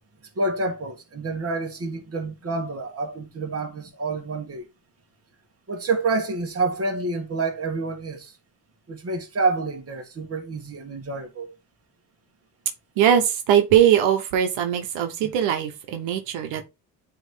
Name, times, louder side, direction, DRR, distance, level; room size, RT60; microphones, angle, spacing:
voice 1, 0.4-4.7 5.7-8.3 8.9-11.5 15.2-15.3, right 3 dB, 30° right, 1.9 m, -28 dB
voice 2, 13.0-16.6, right 9 dB, 85° right, 1.1 m, -20 dB
8.7 x 3.2 x 3.7 m
cardioid pair, 100°, 46 cm